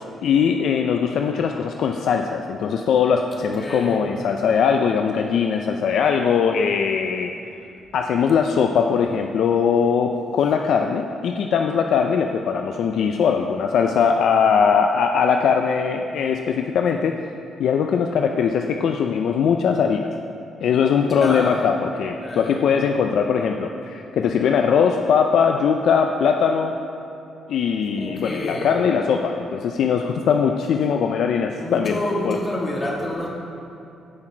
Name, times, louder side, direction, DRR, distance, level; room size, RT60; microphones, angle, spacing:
voice 1, 0.2-7.3 7.9-17.1 17.6-20.1 20.6-26.7 27.5-32.0 32.2-32.4, left 6 dB, 70° left, 4 dB, 0.5 m, -20 dB
voice 2, 3.5-4.0 21.0-21.7 22.2-22.7 28.0-28.8 30.7-31.0 31.5-33.3, left 1 dB, 30° left, -3 dB, 2.6 m, -28 dB
16.0 x 5.8 x 4.5 m, 2.7 s
cardioid pair, 90°, 0 cm